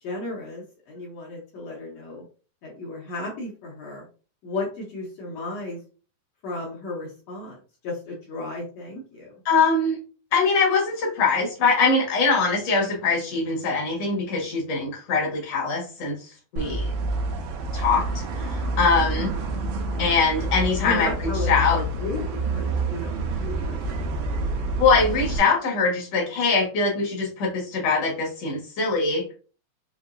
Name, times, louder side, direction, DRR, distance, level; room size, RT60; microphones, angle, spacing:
voice 1, 0.0-2.2 2.6-4.1 4.4-5.8 6.4-7.6 7.8-9.3 19.2-19.6 20.8-24.4, left 2 dB, 80° left, -3 dB, 1.5 m, -34 dB
voice 2, 9.5-10.0 10.3-16.9 17.7-19.3 20.0-21.8 24.8-29.2, left 4 dB, 55° left, -2 dB, 2.0 m, -23 dB
sound 1, 16.6-25.4, right 2 dB, 80° right, 2.5 m, -28 dB
5.7 x 2.7 x 2.5 m, 0.37 s
omnidirectional pair, 4.2 m